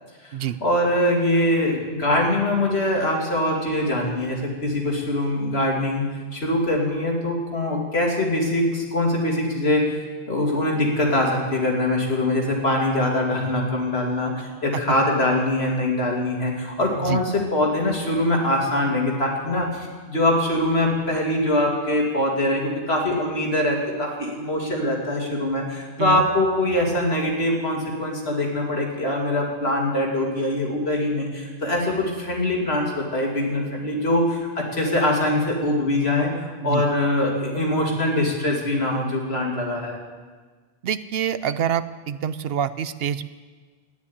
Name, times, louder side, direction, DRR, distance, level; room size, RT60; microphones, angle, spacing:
voice 1, 0.2-6.1 6.3-10.0 10.3-40.0, left 1 dB, 85° left, 0 dB, 2.8 m, -23 dB
voice 2, 40.8-43.2, right 9 dB, 75° right, 14 dB, 0.8 m, -26 dB
12.0 x 9.9 x 9.8 m, 1.4 s
omnidirectional pair, 1.0 m